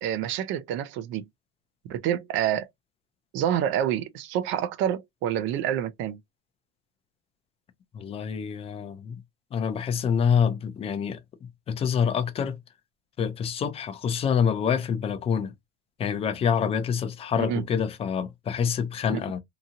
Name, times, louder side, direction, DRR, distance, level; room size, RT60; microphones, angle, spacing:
voice 1, 0.0-1.3 1.9-2.7 3.3-6.2 17.4-17.7 19.1-19.2, right 10 dB, 40° right, 0.4 m, -27 dB
voice 2, 7.9-9.2 9.5-11.2 11.7-12.6 13.2-15.5 16.0-19.4, left 7 dB, 20° left, 0.4 m, -26 dB
2.8 x 2.6 x 2.5 m
supercardioid pair, 140°, 30 cm